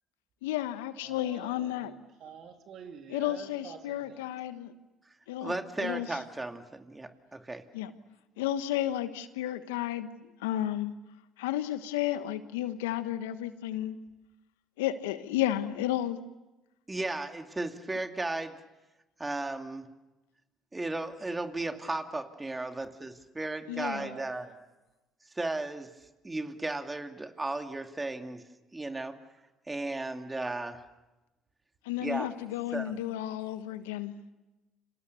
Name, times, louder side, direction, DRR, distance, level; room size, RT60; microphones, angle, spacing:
voice 1, 0.4-1.9 3.1-4.7 5.3-5.5 5.8-6.1 7.7-7.9 8.4-10.9 11.4-14.0 14.8-16.2 23.7-24.1 31.8-34.2, left 13 dB, 80° left, 12 dB, 1.2 m, -32 dB
voice 2, 1.0-4.2 23.8-24.6, right 7 dB, 60° right, 5 dB, 3.2 m, -48 dB
voice 3, 5.4-7.6 16.9-18.6 19.2-19.9 20.7-24.5 25.4-25.9 26.2-28.4 28.7-29.2 29.7-30.8 32.0-32.3 32.7-32.9, right 2 dB, 20° right, 6 dB, 2.7 m, -35 dB
30.0 x 27.5 x 6.9 m, 1.1 s
hypercardioid pair, 60°, 0 cm